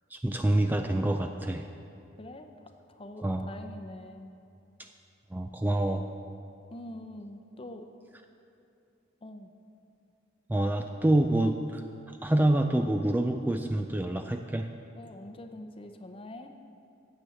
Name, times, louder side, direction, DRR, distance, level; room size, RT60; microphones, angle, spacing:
voice 1, 0.1-1.7 3.2-3.5 4.8-4.9 5.3-6.0 10.5-14.7, right 1 dB, 10° right, 5 dB, 0.3 m, -27 dB
voice 2, 2.2-4.3 6.7-7.9 9.2-9.5 15.0-16.5, left 1 dB, 30° left, 6 dB, 0.7 m, -44 dB
9.2 x 7.9 x 7.1 m, 2.7 s
head